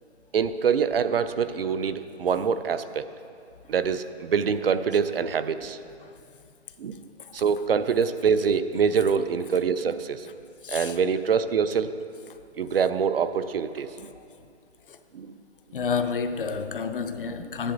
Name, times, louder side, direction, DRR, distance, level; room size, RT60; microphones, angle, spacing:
voice 1, 0.3-3.1 3.7-5.8 6.8-7.0 7.3-10.3 10.7-11.9 12.6-14.1 15.1-15.3, right 6 dB, 55° right, 0.5 m, -25 dB
voice 2, 10.6-11.0 14.1-14.2 14.9-15.0 15.7-17.7, left 5 dB, 50° left, 0.6 m, -30 dB
13.0 x 10.0 x 3.9 m
hypercardioid pair, 170°, 34 cm